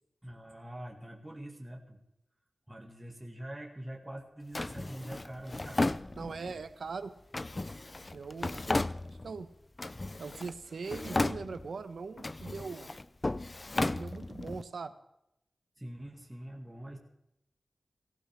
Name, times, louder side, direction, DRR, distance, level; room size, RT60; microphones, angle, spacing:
voice 1, 0.2-2.0 2.7-5.8 15.8-17.0, right 1 dB, 15° right, 0 dB, 2.1 m, -44 dB
Drawer open or close, 4.5-6.6 7.3-9.4 9.8-10.6 10.8-11.8 12.2-14.6, left 2 dB, 35° left, 0.5 m, -34 dB
voice 2, 6.1-7.1 8.1-8.8 9.2-9.5 10.2-12.9 13.8-14.9, right 4 dB, 85° right, 11 dB, 1.0 m, -40 dB
17.5 x 16.0 x 3.6 m, 0.80 s
wide cardioid pair, 70°, 0 cm